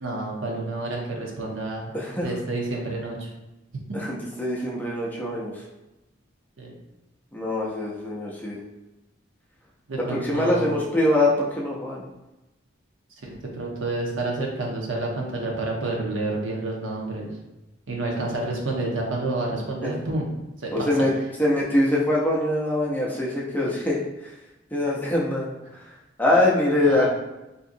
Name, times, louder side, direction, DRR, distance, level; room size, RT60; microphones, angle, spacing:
voice 1, 0.0-3.3 3.7-3.8 6.6-6.7 9.9-10.7 13.2-17.3 17.9-20.3 20.6-21.0 23.6-23.7 26.8-27.1, right 2 dB, 85° right, -1 dB, 0.8 m, -29 dB
voice 2, 1.9-2.3 3.9-5.6 7.3-8.6 10.1-12.0 19.8-19.9 20.7-21.1 21.4-24.0 24.2-24.3 24.7-25.8 26.2-27.1, left 1 dB, 10° left, -4 dB, 0.5 m, -23 dB
3.7 x 2.7 x 2.6 m, 0.99 s
head